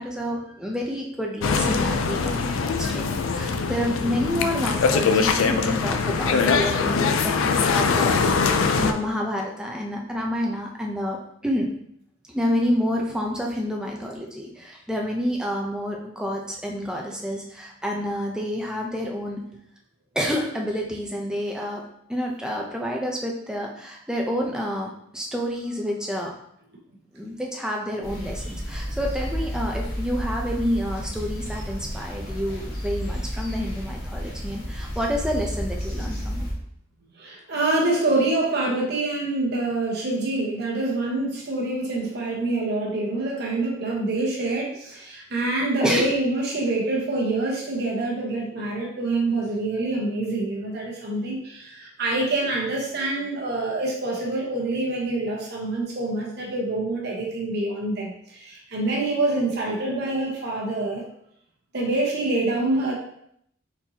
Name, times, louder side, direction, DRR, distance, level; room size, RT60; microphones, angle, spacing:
voice 1, 0.0-8.2 8.5-11.2 11.4-11.7 12.3-19.4 20.1-21.8 22.1-26.3 27.1-36.4 45.8-46.1, equal, 5° right, -1 dB, 0.6 m, -28 dB
sound 1, 1.4-8.9, left 5 dB, 85° left, 0.4 m, -22 dB
sound 2, 28.0-36.5, equal, 55° left, 1.4 m, -31 dB
voice 2, 37.2-61.0 61.7-62.9, right 2 dB, 55° right, -3 dB, 1.1 m, -26 dB
4.4 x 4.0 x 2.8 m, 0.71 s
head